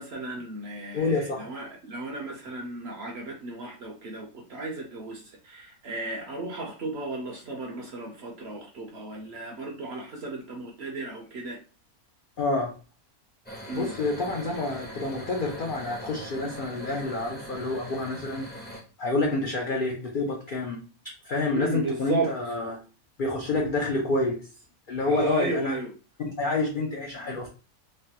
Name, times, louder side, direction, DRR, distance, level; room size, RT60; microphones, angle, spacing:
voice 1, 0.0-11.6 13.7-13.9 21.5-22.3 25.0-25.9, right 3 dB, 60° right, 0 dB, 0.7 m, -34 dB
voice 2, 0.9-1.5 12.4-12.7 13.7-18.5 19.0-20.8 21.2-22.8 23.2-24.4 24.9-25.7 26.4-27.5, left 3 dB, 70° left, 0 dB, 0.5 m, -28 dB
sound 1, 13.5-18.8, equal, 10° left, 0.5 m, -41 dB
3.2 x 2.2 x 2.7 m, 0.34 s
omnidirectional pair, 1.6 m